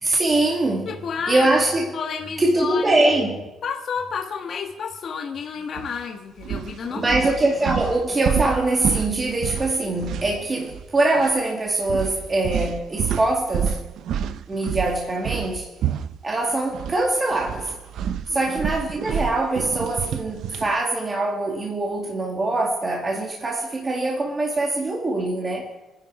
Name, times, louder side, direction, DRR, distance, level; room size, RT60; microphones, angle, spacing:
voice 1, 0.0-0.9 1.3-2.0 2.4-3.4 6.9-13.9 14.5-15.7 16.2-17.8 18.3-25.7, right 2 dB, 25° right, 2.1 m, -23 dB
voice 2, 0.9-1.5 1.9-3.3 3.6-7.2 18.3-18.5, left 6 dB, 50° left, 1.4 m, -31 dB
sound 1, 5.8-6.0 6.4-10.9 11.1-11.4 11.9-17.0 17.3-20.8, right 9 dB, 70° right, 0.6 m, -29 dB
28.0 x 10.5 x 4.8 m
cardioid pair, 145°, 0 cm